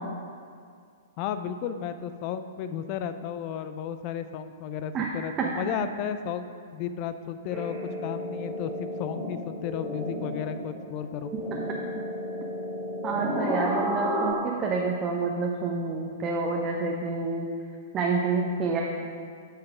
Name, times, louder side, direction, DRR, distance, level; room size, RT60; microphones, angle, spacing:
voice 1, 1.2-7.8 8.0-11.3, left 8 dB, 40° left, 10 dB, 0.5 m, -33 dB
sound 1, 7.5-14.3, equal, ahead, 1.7 m, -32 dB
voice 2, 13.0-17.5 17.9-18.8, right 4 dB, 25° right, -1 dB, 0.8 m, -28 dB
8.9 x 5.8 x 5.0 m, 2.2 s
figure-of-eight pair, 110°, 0 cm